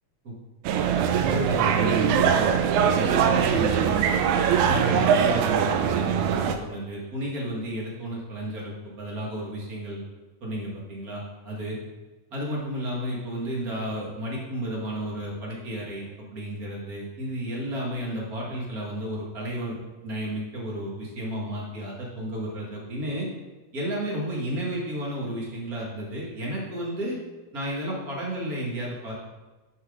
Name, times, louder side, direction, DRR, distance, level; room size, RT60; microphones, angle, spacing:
sound 1, 0.6-6.5, right 7 dB, 80° right, 1.9 m, -22 dB
voice 1, 1.1-2.5 2.9-3.9 4.7-10.0 10.4-11.8 12.3-23.3 23.7-27.2 27.5-29.1, right 1 dB, 30° right, -4 dB, 2.2 m, -32 dB
10.5 x 5.9 x 3.9 m, 1.2 s
omnidirectional pair, 3.7 m